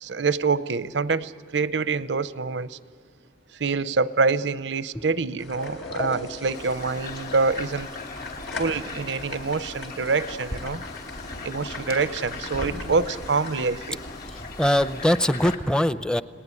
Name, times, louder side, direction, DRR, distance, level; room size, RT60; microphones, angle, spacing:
voice 1, 0.0-2.8 3.6-7.9 8.6-10.8 11.4-14.0, right 4 dB, 90° right, 16 dB, 0.7 m, -26 dB
sound 1, 5.4-14.3, left 2 dB, 90° left, 4.2 m, -39 dB
sound 2, 6.5-15.6, left 3 dB, 55° left, 2.9 m, -38 dB
voice 2, 14.4-16.2, equal, 5° left, 13 dB, 0.6 m, -22 dB
30.0 x 19.5 x 9.7 m, 2.1 s
head